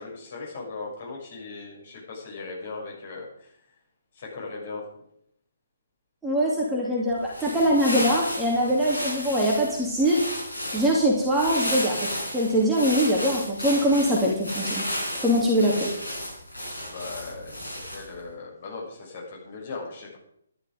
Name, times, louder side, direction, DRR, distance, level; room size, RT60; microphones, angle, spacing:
voice 1, 0.0-3.5 4.1-4.8 16.8-20.2, left 3 dB, 40° left, -2 dB, 6.6 m, -38 dB
voice 2, 6.2-10.2 10.7-14.8 15.2-15.9, equal, 5° right, -5 dB, 2.6 m, -23 dB
sound 1, 7.2-18.2, equal, 80° left, 4.8 m, -33 dB
12.0 x 11.5 x 5.2 m, 0.71 s
figure-of-eight pair, 135°, 0 cm